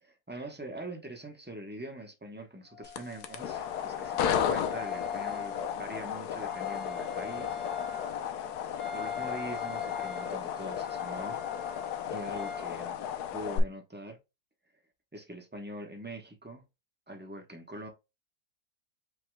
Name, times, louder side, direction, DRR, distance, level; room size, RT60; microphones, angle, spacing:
voice 1, 0.0-7.7 8.3-8.5 8.9-11.4 12.1-13.0 13.3-14.2 15.1-16.6 17.1-17.9, right 1 dB, 10° right, 0.7 m, -43 dB
Wind instrument woodwind instrument, 2.7-12.7, left 7 dB, 45° left, 2.1 m, -41 dB
sound 1, 2.8-13.6, left 8 dB, 80° left, 1.2 m, -34 dB
5.2 x 4.0 x 2.2 m
omnidirectional pair, 1.7 m